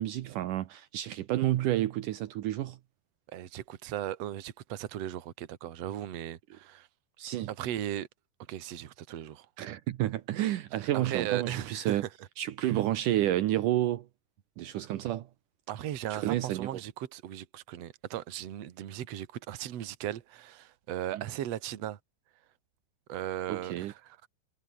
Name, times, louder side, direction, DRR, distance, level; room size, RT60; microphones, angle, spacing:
voice 1, 0.0-2.8 7.2-7.5 9.6-12.0 12.4-14.1 14.6-15.3 16.1-16.8 21.1-21.2 23.5-23.9, right 14 dB, 85° right, 1.8 m, -30 dB
voice 2, 3.3-6.9 7.5-8.1 8.5-9.5 10.9-12.1 15.7-22.0 23.1-24.3, right 12 dB, 60° right, 1.7 m, -37 dB
omnidirectional pair, 5.2 m